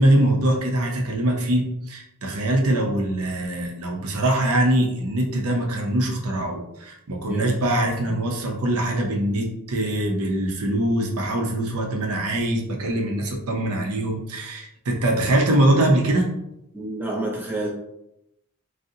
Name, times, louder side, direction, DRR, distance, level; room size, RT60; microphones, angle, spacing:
voice 1, 0.0-16.3, right 1 dB, 90° right, 1 dB, 0.6 m, -23 dB
voice 2, 7.2-7.5 8.0-8.1 16.7-17.7, right 2 dB, 10° right, -2 dB, 0.4 m, -29 dB
3.6 x 2.0 x 2.7 m, 0.84 s
head